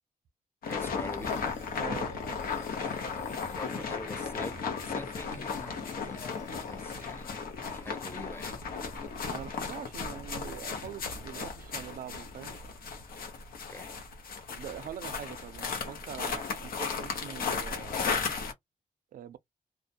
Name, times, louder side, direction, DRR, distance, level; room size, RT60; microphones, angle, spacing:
sound 1, 0.6-18.5, left 5 dB, 90° left, 0.8 m, -35 dB
sound 2, 0.7-8.1 8.3-9.9, left 2 dB, 55° left, 0.9 m, -53 dB
voice 1, 0.7-1.4 3.5-7.4 7.7-8.6 13.7-13.9, left 2 dB, 15° left, 0.5 m, -44 dB
voice 2, 1.8-2.4 9.3-12.6 14.5-18.0 19.1-19.4, right 9 dB, 80° right, 0.4 m, -43 dB
2.3 x 2.1 x 2.7 m
cardioid pair, 90°, 15 cm